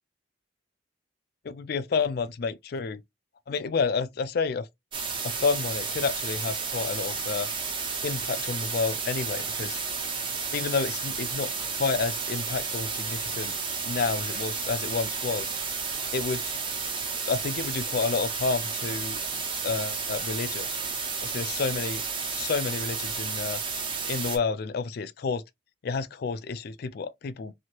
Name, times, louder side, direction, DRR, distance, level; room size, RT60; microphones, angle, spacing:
voice 1, 1.4-3.0 3.5-4.7 5.2-7.5 8.0-9.8 10.5-13.5 13.9-15.5 16.1-16.5 17.2-19.2 19.6-20.7 21.2-22.0 22.3-23.6 24.1-25.4 25.8-27.5, left 4 dB, 55° left, 0.4 m, -30 dB
sound 1, 4.9-24.4, right 5 dB, 25° right, 0.7 m, -32 dB
3.0 x 2.7 x 2.8 m
head